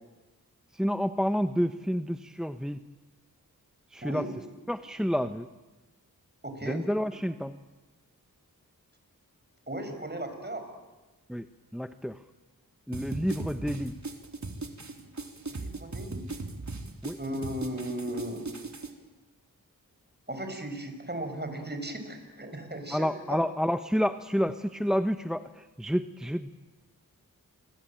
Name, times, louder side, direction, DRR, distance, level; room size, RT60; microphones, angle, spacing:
voice 1, 0.7-2.8 3.9-4.2 4.7-5.5 6.7-7.6 11.3-11.5 11.7-12.2 12.9-13.9 17.0-17.2 22.9-26.5, equal, ahead, 10 dB, 1.1 m, -29 dB
voice 2, 4.0-4.4 6.4-6.8 9.7-10.7 15.5-16.3 17.2-18.5 20.3-23.4, right 1 dB, 30° right, 6 dB, 7.1 m, -36 dB
sound 1, 12.9-18.9, right 3 dB, 50° right, 3.8 m, -38 dB
28.0 x 23.5 x 9.1 m, 1.2 s
cardioid pair, 40°, 36 cm